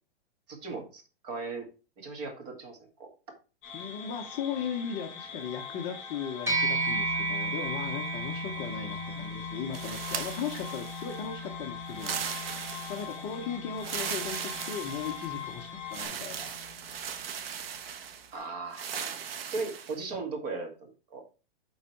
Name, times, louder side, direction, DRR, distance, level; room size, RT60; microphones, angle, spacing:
voice 1, 0.5-1.7 2.0-3.1 18.3-19.2 19.5-21.2, right 3 dB, 40° right, 3 dB, 1.9 m, -37 dB
sound 1, 3.6-16.1, left 7 dB, 35° left, 3.5 m, -43 dB
voice 2, 3.7-12.2 12.9-16.7, left 7 dB, 20° left, 2 dB, 0.6 m, -37 dB
sound 2, 6.5-16.1, right 1 dB, 10° right, 1.1 m, -35 dB
sound 3, 9.7-11.2 11.9-13.2 13.8-15.4 15.9-18.3 18.7-20.0, right 8 dB, 70° right, 1.1 m, -38 dB
8.0 x 3.8 x 4.4 m, 0.33 s
hypercardioid pair, 160°, 31 cm